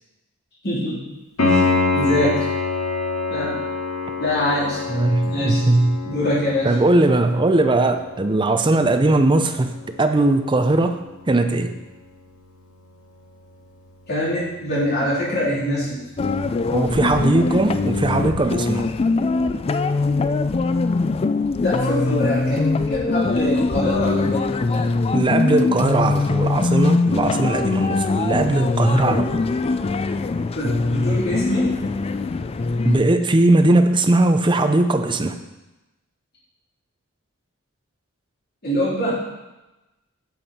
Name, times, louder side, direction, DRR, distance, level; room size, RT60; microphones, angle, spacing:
voice 1, 0.6-1.1 1.4-1.6 1.9-2.5 3.3-3.6 4.2-4.8 5.2-5.6 6.0-6.7 14.1-16.0 21.6-25.0 30.5-31.7 38.6-39.2, left 1 dB, 50° left, -6 dB, 3.3 m, -24 dB
Piano, 1.4-12.0 15.4-15.5, left 3 dB, 90° left, 2.1 m, -27 dB
voice 2, 4.9-6.0 6.6-11.0 11.3-11.8 16.7-18.9 25.1-29.4 32.8-35.4, right 2 dB, 20° right, 7 dB, 0.6 m, -19 dB
sound 1, 16.2-33.0, left 3 dB, 25° left, 0.3 m, -22 dB
9.8 x 7.0 x 4.3 m, 1.0 s
head